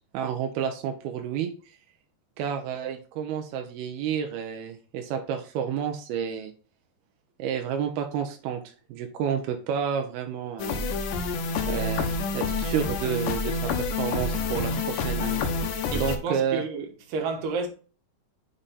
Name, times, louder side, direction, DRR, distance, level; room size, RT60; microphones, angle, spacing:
voice 1, 0.1-1.5 2.4-6.5 7.4-8.6 8.9-10.9 11.6-15.4 15.9-16.7, right 8 dB, 85° right, 2.8 m, -30 dB
sound 1, 10.6-16.2, left 4 dB, 70° left, 2.3 m, -28 dB
voice 2, 15.9-17.7, right 4 dB, 70° right, 2.9 m, -31 dB
7.9 x 3.8 x 4.0 m
omnidirectional pair, 4.4 m